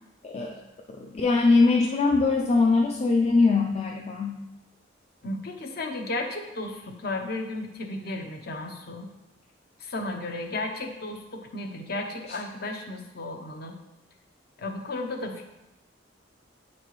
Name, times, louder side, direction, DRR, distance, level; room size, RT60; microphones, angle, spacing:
voice 1, 0.2-0.6 0.9-4.4, left 3 dB, 35° left, 0 dB, 0.4 m, -22 dB
voice 2, 5.2-9.1 9.8-13.7 14.6-15.5, left 2 dB, 55° left, 4 dB, 0.8 m, -34 dB
9.1 x 4.2 x 3.1 m, 0.95 s
head